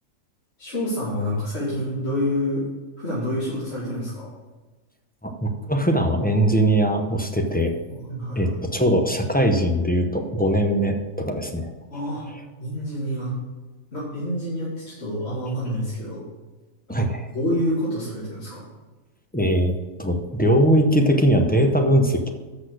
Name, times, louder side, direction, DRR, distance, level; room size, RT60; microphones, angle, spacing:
voice 1, 0.6-2.6 3.0-4.3 7.9-8.5 11.9-12.2 12.6-13.3 13.9-16.2 16.9-18.6, equal, 50° left, -8 dB, 2.3 m, -28 dB
voice 2, 5.2-7.7 8.4-11.7 16.9-17.3 19.3-19.7 20.0-22.3, right 1 dB, 10° left, 3 dB, 0.6 m, -21 dB
8.1 x 6.2 x 6.4 m, 1.2 s
omnidirectional pair, 1.4 m